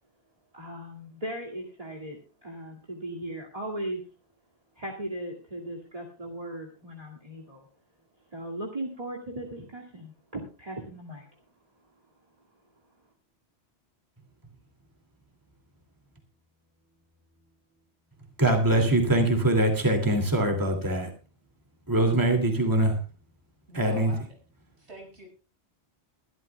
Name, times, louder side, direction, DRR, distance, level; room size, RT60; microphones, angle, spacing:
voice 1, 0.5-4.0 4.8-7.7 8.3-11.3, right 1 dB, 35° right, 2.4 m, -37 dB
voice 2, 18.4-21.1 21.9-23.0 23.7-24.1, right 1 dB, 20° right, 2.6 m, -23 dB
voice 3, 23.7-24.2 24.8-25.3, right 1 dB, 80° right, 6.8 m, -45 dB
22.0 x 12.5 x 2.3 m
omnidirectional pair, 1.1 m